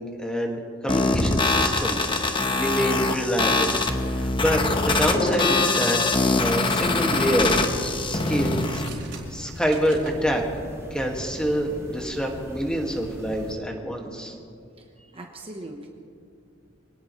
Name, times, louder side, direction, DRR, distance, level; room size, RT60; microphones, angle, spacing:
voice 1, 0.0-3.7 4.1-6.0 6.4-8.8 9.3-10.4 10.9-14.3, equal, 5° left, 1 dB, 1.9 m, -26 dB
sound 1, 0.9-8.9, left 3 dB, 25° left, 1.0 m, -23 dB
sound 2, 6.8-13.5, equal, 15° right, 2.1 m, -40 dB
sound 3, 8.6-10.2, right 5 dB, 65° right, 4.1 m, -44 dB
voice 2, 15.1-15.9, right 1 dB, 30° right, 2 dB, 1.1 m, -39 dB
24.5 x 18.0 x 3.2 m, 2.4 s
head